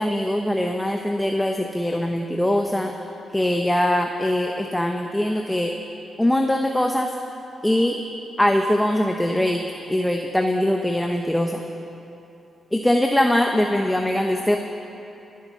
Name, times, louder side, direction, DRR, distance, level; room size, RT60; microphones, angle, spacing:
voice 1, 0.0-2.9 3.3-5.7 6.2-7.1 7.6-8.0 8.4-11.6 12.7-14.6, left 1 dB, 10° left, 3 dB, 0.9 m, -22 dB
20.5 x 9.4 x 6.3 m, 2.8 s
cardioid pair, 80°, 0 cm